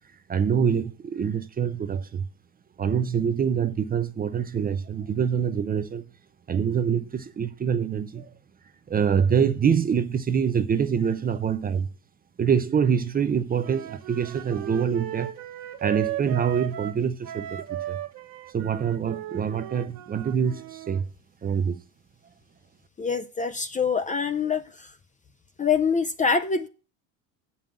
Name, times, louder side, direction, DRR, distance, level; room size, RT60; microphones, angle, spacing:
voice 1, 0.3-2.2 2.8-6.0 6.5-8.3 8.9-11.9 12.4-15.3 15.8-18.0 18.5-21.1 21.4-21.8, right 7 dB, 20° right, 0.6 m, -25 dB
Wind instrument woodwind instrument, 13.6-21.0, right 13 dB, 50° right, 1.2 m, -36 dB
voice 2, 23.0-24.9 25.6-26.7, left 5 dB, 20° left, 0.5 m, -25 dB
7.3 x 5.5 x 7.3 m
supercardioid pair, 110°, 41 cm